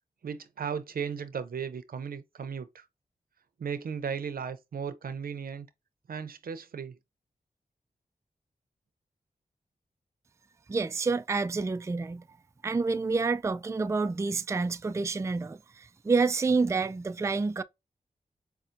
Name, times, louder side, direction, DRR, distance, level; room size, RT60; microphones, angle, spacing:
voice 1, 0.2-2.9 3.6-5.7 6.1-7.0, right 6 dB, 75° right, 0.7 m, -36 dB
voice 2, 10.7-12.2 12.6-17.6, right 4 dB, 20° right, 0.3 m, -28 dB
5.6 x 2.2 x 2.5 m
cardioid pair, 50°, 15 cm